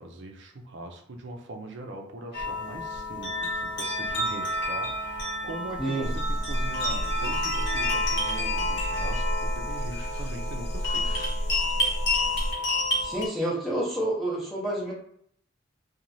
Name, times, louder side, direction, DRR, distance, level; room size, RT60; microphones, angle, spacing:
voice 1, 0.0-11.3, right 2 dB, 60° right, 3 dB, 0.5 m, -41 dB
sound 1, 2.3-13.3, left 1 dB, 60° left, 0.9 m, -30 dB
sound 2, 6.0-12.5, equal, 35° left, 0.3 m, -31 dB
voice 2, 13.0-14.9, right 1 dB, ahead, -7 dB, 0.6 m, -29 dB
3.0 x 2.3 x 2.6 m, 0.66 s
head